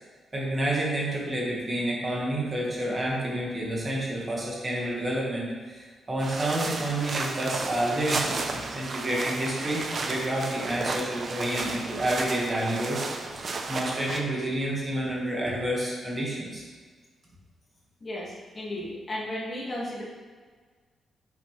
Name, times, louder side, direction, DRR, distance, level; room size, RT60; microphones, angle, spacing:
voice 1, 0.3-13.0 13.7-16.6, right 1 dB, 25° right, -4 dB, 1.8 m, -29 dB
sound 1, 6.2-14.2, right 3 dB, 40° right, 0.8 m, -33 dB
voice 2, 18.0-20.0, left 1 dB, 30° left, -5 dB, 2.4 m, -34 dB
11.0 x 7.2 x 3.4 m, 1.5 s
wide cardioid pair, 145°, 0 cm